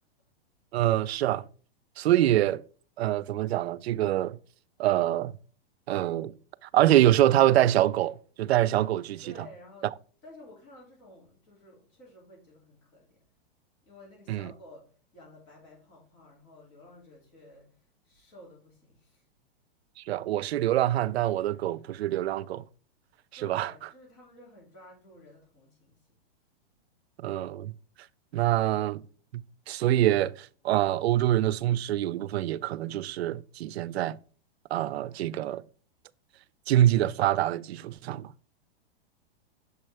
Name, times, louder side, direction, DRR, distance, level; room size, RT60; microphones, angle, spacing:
voice 1, 0.7-1.4 2.0-2.6 3.0-4.4 4.8-5.4 5.9-6.3 6.7-9.2 14.3-14.5 20.1-22.6 23.4-23.7 27.2-27.7 28.3-29.0 29.3-34.2 34.7-35.6 36.7-38.3, right 13 dB, 80° right, 0.5 m, -25 dB
voice 2, 9.2-9.9 10.2-13.2 13.9-19.3 23.4-26.1, left 1 dB, 35° left, 2.5 m, -52 dB
6.9 x 4.5 x 3.3 m
supercardioid pair, 165°, 31 cm